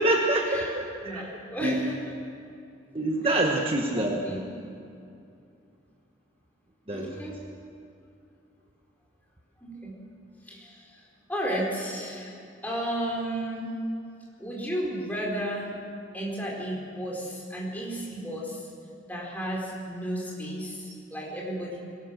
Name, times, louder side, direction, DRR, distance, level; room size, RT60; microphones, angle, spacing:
voice 1, 0.0-1.3 1.6-1.8 2.9-4.2 6.9-7.1, right 1 dB, 30° right, 1 dB, 1.3 m, -26 dB
voice 2, 1.0-2.2 3.2-3.5 3.9-4.5 6.9-7.4 9.6-9.9 10.5-10.8 11.3-12.3 12.6-13.7 14.4-15.7 16.1-18.6 19.1-21.8, right 1 dB, 10° left, -3 dB, 4.5 m, -33 dB
22.5 x 19.0 x 6.6 m, 2.5 s
head